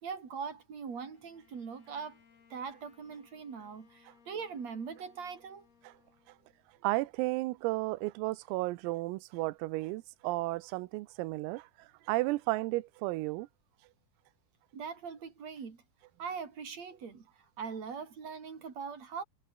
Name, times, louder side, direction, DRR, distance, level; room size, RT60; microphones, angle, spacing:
voice 1, 0.0-2.2 2.5-5.7 14.7-15.8 16.2-17.3 17.6-19.2, right 6 dB, 35° right, 4.2 m, -41 dB
Bowed string instrument, 1.1-6.9, left 7 dB, 80° left, 8.0 m, -65 dB
voice 2, 6.8-13.5, right 20 dB, 85° right, 3.5 m, -33 dB
omnidirectional pair, 5.9 m